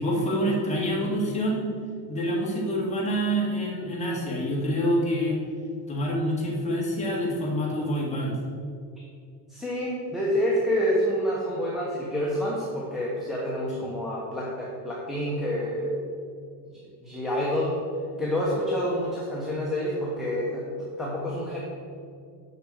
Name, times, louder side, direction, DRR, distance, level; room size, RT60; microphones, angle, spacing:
voice 1, 0.0-1.7 2.1-5.4 5.9-8.4, equal, 15° left, -4 dB, 2.0 m, -26 dB
voice 2, 9.5-16.0 17.0-17.8 18.2-21.6, equal, ahead, -6 dB, 1.1 m, -28 dB
6.9 x 6.3 x 6.3 m, 2.3 s
cardioid pair, 160°, 47 cm